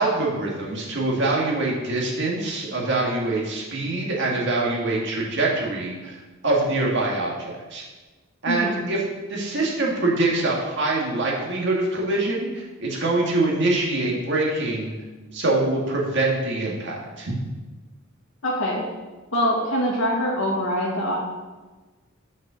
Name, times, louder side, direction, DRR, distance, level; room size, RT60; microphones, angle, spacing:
voice 1, 0.0-7.8 8.4-9.0 9.3-14.9 15.3-17.3, right 2 dB, 55° right, -2 dB, 1.9 m, -24 dB
voice 2, 8.4-8.8 18.4-18.8 19.3-21.2, equal, 80° left, -3 dB, 1.4 m, -24 dB
6.5 x 5.4 x 6.2 m, 1.2 s
head